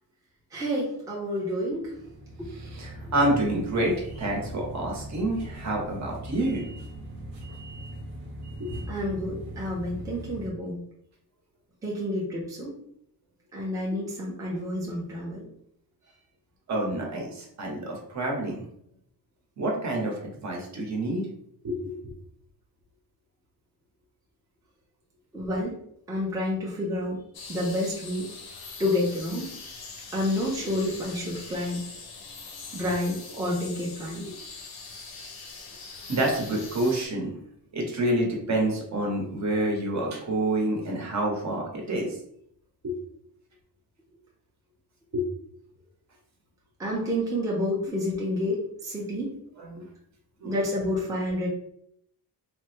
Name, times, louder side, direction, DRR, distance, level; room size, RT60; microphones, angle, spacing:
voice 1, 0.5-1.9 8.9-10.8 11.8-12.7 13.5-15.5 25.3-25.8 26.1-27.2 27.5-28.3 28.8-29.5 30.1-31.8 32.7-34.2 46.8-49.3 50.4-51.5, left 1 dB, 10° right, -5 dB, 0.6 m, -29 dB
sound 1, 1.8-10.5, right 1 dB, 90° right, 1.0 m, -40 dB
voice 2, 2.5-6.7 8.6-8.7 16.7-18.6 19.6-21.3 21.6-22.0 34.1-34.3 36.1-37.3 37.7-42.2 42.8-43.0 45.1-45.3 49.6-49.9 50.4-50.5, right 1 dB, 45° right, 0 dB, 0.9 m, -28 dB
sound 2, 27.3-37.1, left 4 dB, 70° left, 0.7 m, -42 dB
3.3 x 2.0 x 3.1 m, 0.71 s
wide cardioid pair, 145°, 39 cm